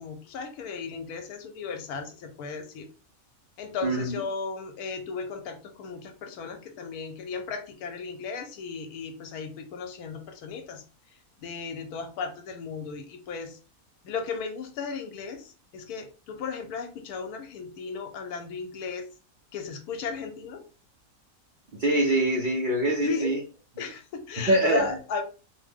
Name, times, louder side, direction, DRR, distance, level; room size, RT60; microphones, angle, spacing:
voice 1, 0.0-2.9 3.6-10.8 11.4-13.6 14.0-19.1 19.5-20.6 23.0-23.3 23.8-25.2, left 5 dB, 90° left, 6 dB, 1.1 m, -35 dB
voice 2, 3.8-4.2 21.8-23.4 24.5-25.0, right 1 dB, 85° right, 0 dB, 0.4 m, -24 dB
2.8 x 2.0 x 3.4 m, 0.35 s
omnidirectional pair, 1.6 m